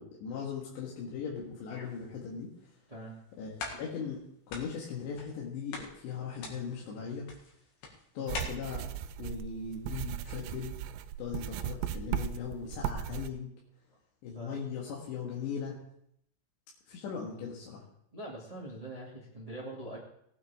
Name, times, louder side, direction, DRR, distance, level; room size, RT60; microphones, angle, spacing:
voice 1, 0.0-2.5 3.4-7.3 8.2-8.9 9.2-10.8 11.2-13.5 14.2-15.8 16.9-17.8, left 6 dB, 90° left, -3 dB, 3.9 m, -39 dB
sound 1, 1.4-2.1 2.7-2.8 3.2-3.3 3.6-4.2 4.5-5.4 5.7-8.4, left 3 dB, 70° left, 3.8 m, -43 dB
sound 2, 8.3-13.3, right 10 dB, 85° right, 2.1 m, -37 dB
voice 2, 18.1-20.0, right 1 dB, 15° right, -5 dB, 1.3 m, -43 dB
18.0 x 9.4 x 3.6 m, 0.73 s
omnidirectional pair, 4.9 m